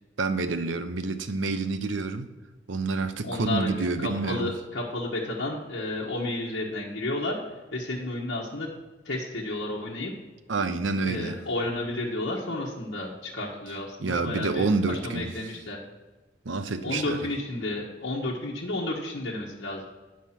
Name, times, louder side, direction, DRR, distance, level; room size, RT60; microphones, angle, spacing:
voice 1, 0.2-2.3 2.7-4.5 10.5-11.4 14.0-15.3 16.4-17.2, right 3 dB, 75° right, 10 dB, 0.7 m, -28 dB
voice 2, 3.2-3.7 4.0-7.4 7.7-8.7 9.0-10.1 11.0-14.7 15.0-15.8 16.8-19.9, left 2 dB, 65° left, -5 dB, 1.2 m, -31 dB
9.3 x 5.3 x 5.8 m, 1.2 s
head